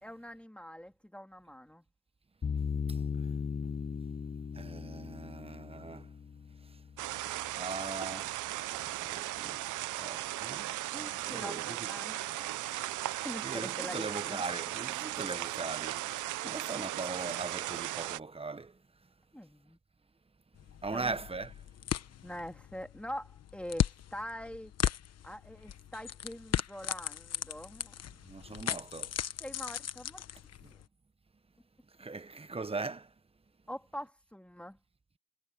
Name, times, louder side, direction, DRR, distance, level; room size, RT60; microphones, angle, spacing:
voice 1, 0.0-1.8 10.9-12.9 13.2-14.4 16.4-16.6 19.3-19.8 20.9-21.2 22.2-24.7 25.2-27.9 29.4-30.2 30.7-30.8 33.7-34.8, equal, 5° left, 3.2 m, -44 dB
sound 1, 2.4-7.5, left 6 dB, 30° left, 1.0 m, -37 dB
voice 2, 2.9-3.3 3.6-3.7 4.5-6.1 6.7-6.8 7.6-8.4 8.7-9.6 10.0-12.1 13.4-16.0 16.5-18.8 20.8-21.5 28.3-29.1 30.6-30.7 32.0-33.1, right 3 dB, 20° right, 1.2 m, -40 dB
sound 2, 7.0-18.2, right 15 dB, 85° right, 0.9 m, -37 dB
sound 3, 20.5-30.8, left 10 dB, 55° left, 1.2 m, -37 dB
cardioid pair, 90°, 30 cm